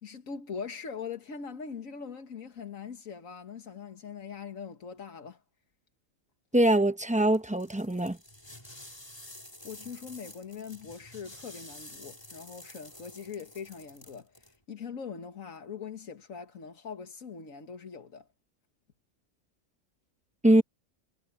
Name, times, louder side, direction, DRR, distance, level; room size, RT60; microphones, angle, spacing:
voice 1, 0.0-5.4 9.6-18.3, left 6 dB, 85° left, 1.9 m, -42 dB
voice 2, 6.5-8.2 20.4-20.6, right 1 dB, 5° right, 0.7 m, -23 dB
sound 1, 7.3-14.6, left 1 dB, 20° left, 3.9 m, -50 dB
omnidirectional pair, 1.4 m